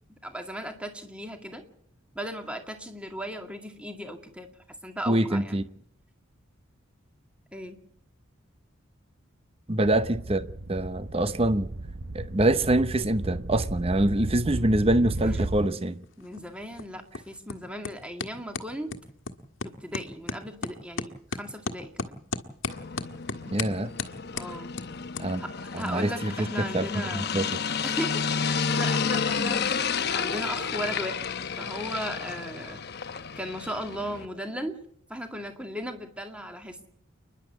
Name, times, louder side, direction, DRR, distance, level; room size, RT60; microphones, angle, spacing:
voice 1, 0.1-1.6 2.2-5.6 7.5-7.8 14.5-14.9 15.2-15.3 16.2-18.9 19.6-22.2 24.3-24.8 25.4-27.4 27.8-29.7 30.1-31.3 31.6-32.8 33.4-34.8 35.1-36.9, equal, 5° right, 2.2 m, -37 dB
voice 2, 5.1-5.6 9.7-11.7 12.1-16.0 23.5-23.9 25.2-25.4 25.7-26.9 27.1-27.5, right 1 dB, 30° right, 0.8 m, -25 dB
sound 1, 9.8-15.7, right 2 dB, 55° right, 0.9 m, -35 dB
sound 2, 15.4-31.3, left 4 dB, 75° left, 1.6 m, -40 dB
sound 3, 22.7-34.3, left 6 dB, 50° left, 1.0 m, -31 dB
29.0 x 11.0 x 8.5 m
head